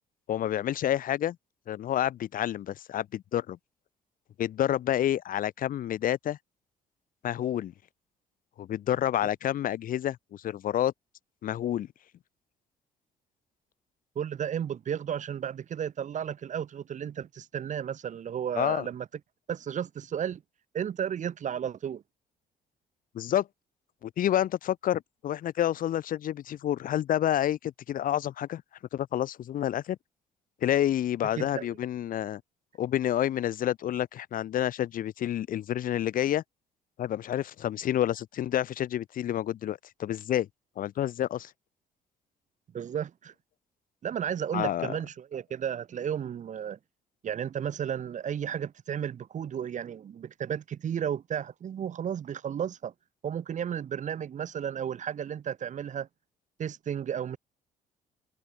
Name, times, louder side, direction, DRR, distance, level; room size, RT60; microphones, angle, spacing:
voice 1, 0.3-1.4 1.7-3.6 4.4-6.4 7.2-7.7 8.6-10.9 11.4-11.9 18.5-18.9 23.1-23.5 24.0-28.6 28.9-30.0 30.6-32.4 32.8-36.4 37.0-40.5 40.8-41.5 44.5-44.9, left 11 dB, 60° left, 1.2 m, -29 dB
voice 2, 14.1-19.1 19.5-20.4 20.7-22.0 31.4-31.7 42.7-43.3 44.0-46.8 47.2-52.9 53.2-56.1 56.6-57.4, right 8 dB, 50° right, 1.5 m, -33 dB
open air
supercardioid pair, 70°, 16 cm